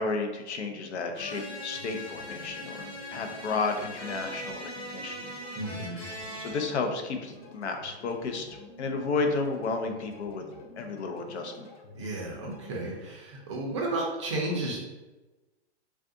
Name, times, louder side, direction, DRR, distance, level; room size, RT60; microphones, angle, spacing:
voice 1, 0.0-5.2 6.4-10.4 10.8-11.7, left 3 dB, 75° left, 4 dB, 0.6 m, -32 dB
sound 1, 0.7-13.1, left 2 dB, 35° left, 0.4 m, -50 dB
sound 2, 1.1-6.6, equal, 20° left, 1.1 m, -40 dB
voice 2, 5.5-6.1 11.9-14.9, right 2 dB, 25° right, -1 dB, 0.4 m, -33 dB
3.5 x 2.3 x 2.6 m, 1.1 s
hypercardioid pair, 155°, 34 cm